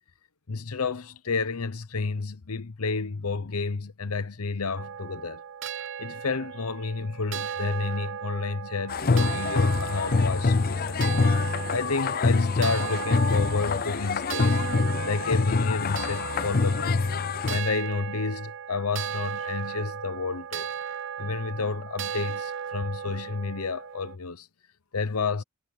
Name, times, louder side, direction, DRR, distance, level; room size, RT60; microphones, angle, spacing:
voice 1, 0.5-5.4 6.0-11.2 11.7-14.6 15.0-17.1 17.5-20.7 21.2-24.5 24.9-25.4, left 4 dB, 85° left, 1.0 m, -30 dB
sound 1, 4.8-24.2, right 8 dB, 60° right, 0.6 m, -36 dB
sound 2, 8.9-17.6, left 4 dB, 45° left, 0.5 m, -25 dB
head